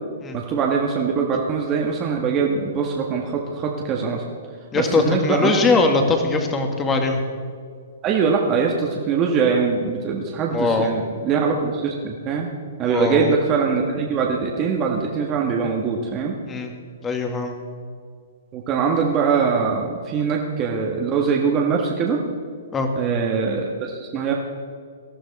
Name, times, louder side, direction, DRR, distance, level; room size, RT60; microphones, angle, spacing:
voice 1, 0.3-4.2 4.7-5.5 8.0-12.5 12.8-16.3 18.5-22.2 22.9-24.3, right 5 dB, 30° right, -1 dB, 1.5 m, -22 dB
voice 2, 4.7-7.2 10.5-10.9 12.8-13.3 16.5-16.7 17.0-17.6 22.7-22.9, left 3 dB, 20° left, 4 dB, 1.9 m, -21 dB
19.0 x 12.5 x 4.2 m, 2.1 s
hypercardioid pair, 130°, 0 cm